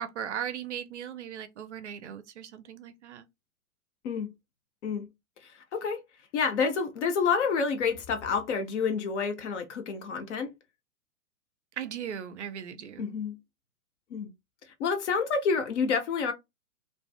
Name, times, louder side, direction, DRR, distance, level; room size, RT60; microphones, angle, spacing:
voice 1, 0.0-3.3 11.8-13.1, right 9 dB, 55° right, 0.5 m, -38 dB
voice 2, 5.4-6.0 6.3-10.5 13.0-13.4 14.1-14.3 14.8-16.3, left 5 dB, 50° left, 0.8 m, -28 dB
2.4 x 2.4 x 2.3 m
figure-of-eight pair, 115°, 45 cm